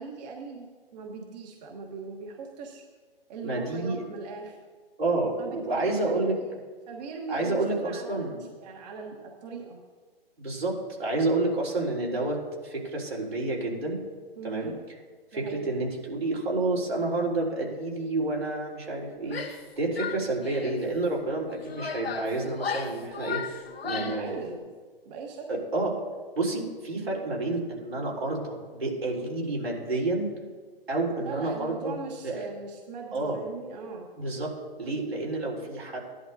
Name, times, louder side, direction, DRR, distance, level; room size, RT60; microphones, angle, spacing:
voice 1, 0.0-2.8 3.3-4.6 5.4-6.1 6.9-9.8 14.4-14.8 15.3-15.7 24.0-24.6 25.0-25.5 31.2-34.1, right 4 dB, 45° right, 1 dB, 1.3 m, -40 dB
voice 2, 3.4-4.0 5.0-6.4 7.3-8.4 10.4-14.0 14.4-14.7 15.3-24.3 25.5-26.0 26.3-30.3 30.9-32.0 32.2-32.5 33.1-33.4 34.2-36.0, right 2 dB, 85° right, -4 dB, 3.8 m, -29 dB
Female speech woman speaking / Yell, 19.2-19.7 20.0-20.8 21.5-24.3, left 6 dB, 80° left, 1.2 m, -35 dB
16.0 x 11.0 x 2.7 m, 1.5 s
figure-of-eight pair, 130°, 30 cm